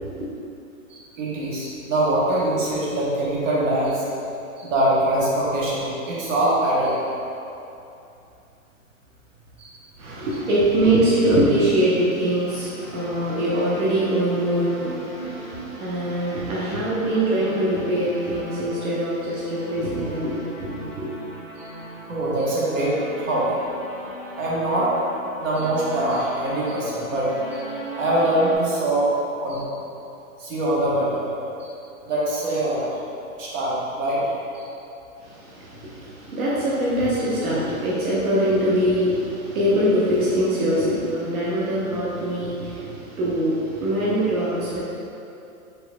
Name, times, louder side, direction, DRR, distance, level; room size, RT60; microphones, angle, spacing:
voice 1, 0.9-4.0 4.6-7.1 9.6-10.0 21.6-21.7 22.1-23.5 24.4-25.1 25.4-27.6 28.0-29.1 29.4-29.7 30.4-31.2 31.6-31.7 32.0-32.9 33.4-34.2 34.5-34.6, right 1 dB, 60° right, -6 dB, 1.2 m, -23 dB
voice 2, 10.0-21.1 35.2-44.8, right 1 dB, 85° right, -8 dB, 1.0 m, -23 dB
sound 1, 12.5-28.6, equal, 10° left, 0.5 m, -39 dB
sound 2, 14.7-18.6 18.9-19.0 19.3-19.4, right 5 dB, 35° right, 1.3 m, -42 dB
4.4 x 4.0 x 2.2 m, 2.8 s
hypercardioid pair, 165°, 42 cm